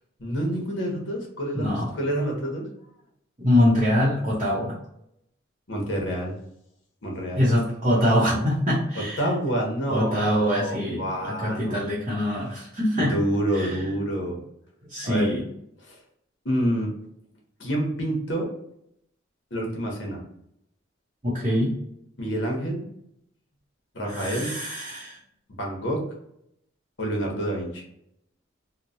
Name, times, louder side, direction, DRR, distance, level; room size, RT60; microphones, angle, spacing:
voice 1, 0.2-2.7 5.7-6.4 7.0-7.4 9.0-11.8 13.0-14.4 15.0-15.3 15.9-16.0 16.4-16.9 17.6-18.5 19.5-20.2 22.2-22.8 23.9-24.5 25.6-26.0 27.0-27.8, right 1 dB, 65° left, 0 dB, 0.9 m, -28 dB
voice 2, 1.5-1.9 3.4-4.7 7.3-9.2 9.9-11.0 11.4-13.2 13.5-13.8 14.9-15.4 21.2-21.7 24.1-25.2, left 1 dB, 35° right, -8 dB, 0.7 m, -23 dB
3.0 x 2.1 x 2.5 m, 0.76 s
head